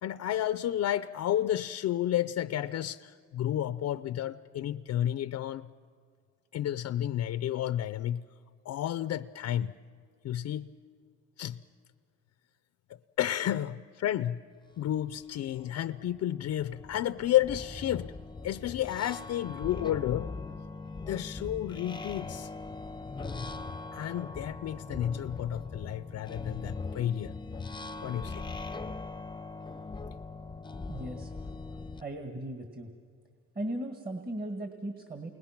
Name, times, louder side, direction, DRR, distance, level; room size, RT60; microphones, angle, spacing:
voice 1, 0.0-5.6 6.5-8.2 8.7-9.7 10.2-10.7 11.4-11.6 13.2-14.4 14.8-18.1 18.4-20.3 21.0-22.5 23.9-27.3 28.0-28.5, left 12 dB, 60° left, 11 dB, 0.5 m, -31 dB
sound 1, 15.0-15.1 15.5-32.0, left 3 dB, 15° left, 0.7 m, -40 dB
voice 2, 30.9-31.3 32.0-32.9 33.6-35.3, right 1 dB, 30° right, 4 dB, 1.8 m, -37 dB
29.0 x 21.0 x 5.9 m, 2.2 s
cardioid pair, 90°, 30 cm